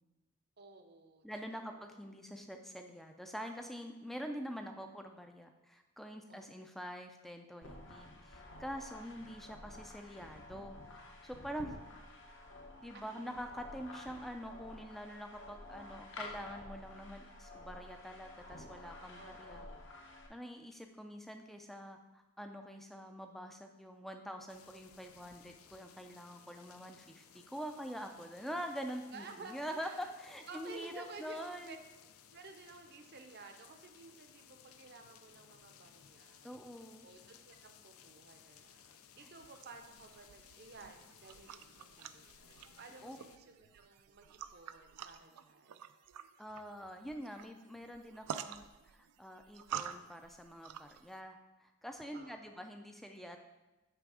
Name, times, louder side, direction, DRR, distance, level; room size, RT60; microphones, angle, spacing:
voice 1, 0.6-1.3 1.5-1.9 6.3-6.7 12.9-13.2 19.1-19.8 29.1-30.1 30.5-31.8 32.3-36.5 37.0-45.9 52.1-52.6, right 3 dB, 45° right, 5 dB, 0.6 m, -54 dB
voice 2, 1.2-11.8 12.8-31.8 36.4-37.1 39.2-39.3 43.0-43.2 46.4-53.4, equal, ahead, 5 dB, 0.4 m, -45 dB
sound 1, 7.6-20.3, left 2 dB, 55° left, 0.9 m, -51 dB
sound 2, 24.5-43.4, left 8 dB, 70° left, 0.4 m, -61 dB
sound 3, 39.3-51.2, right 9 dB, 90° right, 0.3 m, -49 dB
8.9 x 3.4 x 4.8 m, 1.1 s
head